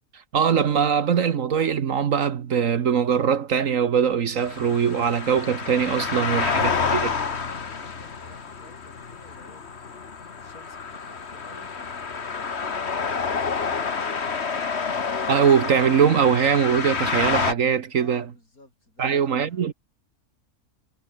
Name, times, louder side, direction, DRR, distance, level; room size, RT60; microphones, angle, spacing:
voice 1, 0.3-7.0 15.3-18.2 19.0-19.7, right 7 dB, 65° right, 1.4 m, -21 dB
sound 1, 4.4-17.5, left 5 dB, 50° left, 1.8 m, -29 dB
voice 2, 6.2-10.0 10.4-12.7 17.9-19.7, left 2 dB, 80° left, 8.1 m, -52 dB
omnidirectional pair, 1.5 m